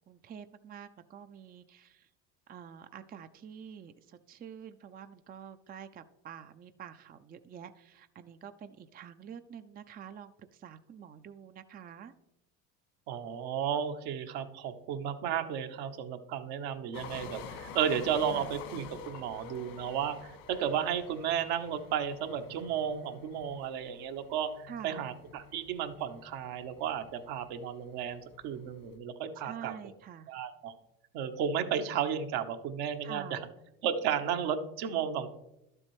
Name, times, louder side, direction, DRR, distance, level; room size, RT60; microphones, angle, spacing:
voice 1, 0.1-2.1 2.5-12.1 18.3-18.5 24.7-25.0 29.4-30.3 33.0-33.4, right 8 dB, 25° right, 10 dB, 0.5 m, -47 dB
voice 2, 13.1-29.7 30.3-30.7 31.1-33.4 33.8-35.3, right 8 dB, 65° right, 7 dB, 1.1 m, -33 dB
sound 1, 16.9-28.9, left 6 dB, 75° left, 1.9 m, -49 dB
12.0 x 7.5 x 3.2 m, 0.88 s
hypercardioid pair, 75°, 41 cm